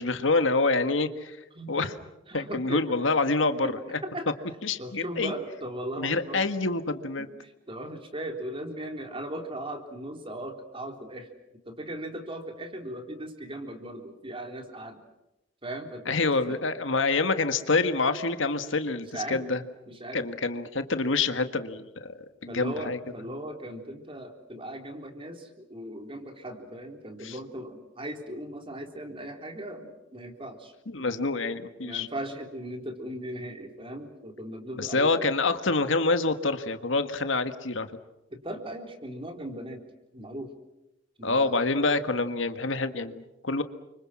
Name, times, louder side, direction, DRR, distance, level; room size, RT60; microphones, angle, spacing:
voice 1, 0.0-1.4 1.7-1.9 2.3-4.0 4.6-5.3 6.0-7.3 16.1-19.6 20.1-22.1 22.4-23.0 27.2-27.3 30.9-32.1 34.8-37.9 41.2-43.6, left 3 dB, 90° left, 9 dB, 1.7 m, -26 dB
voice 2, 1.5-1.9 2.3-3.0 3.6-6.5 7.2-11.3 11.7-15.0 15.6-16.6 18.1-18.2 18.7-18.8 19.0-19.5 19.9-20.3 22.5-30.7 31.0-31.3 31.8-35.2 38.3-39.8 40.1-40.5 41.2-41.6, right 1 dB, 30° right, 4 dB, 3.7 m, -38 dB
30.0 x 25.0 x 6.2 m, 0.93 s
head